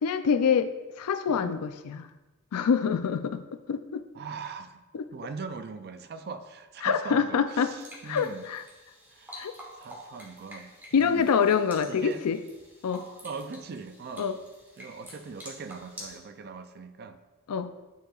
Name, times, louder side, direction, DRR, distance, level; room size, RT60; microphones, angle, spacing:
voice 1, 0.0-2.1 2.5-4.1 4.9-5.0 6.8-7.7 8.0-8.6 9.4-9.5 10.9-12.4 12.8-13.0 14.2-14.3 17.5-17.7, left 6 dB, 90° left, 10 dB, 0.4 m, -26 dB
voice 2, 4.1-4.8 5.1-8.5 9.1-9.4 9.8-11.3 11.9-12.2 13.2-14.3 14.8-17.2, right 5 dB, 45° right, 10 dB, 0.4 m, -41 dB
sound 1, 7.5-16.2, equal, 10° right, 1.2 m, -48 dB
9.1 x 4.7 x 2.4 m, 1.2 s
head